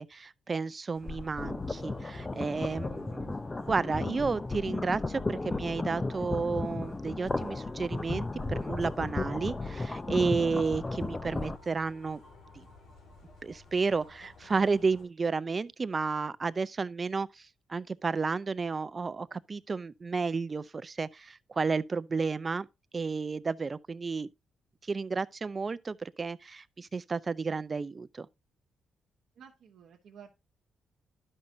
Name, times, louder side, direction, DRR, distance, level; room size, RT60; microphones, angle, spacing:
voice 1, 0.0-3.2 3.7-12.2 12.6-12.7 13.4-17.3 17.7-22.7 22.9-24.3 24.9-28.3, right 4 dB, 35° right, 0.4 m, -32 dB
sound 1, 0.9-15.0, left 2 dB, 90° left, 3.1 m, -55 dB
sound 2, 1.0-11.6, left 3 dB, 20° left, 0.6 m, -35 dB
voice 2, 3.1-3.4 29.4-30.4, right 7 dB, 75° right, 1.0 m, -52 dB
12.0 x 5.4 x 2.7 m
cardioid pair, 85°, 0 cm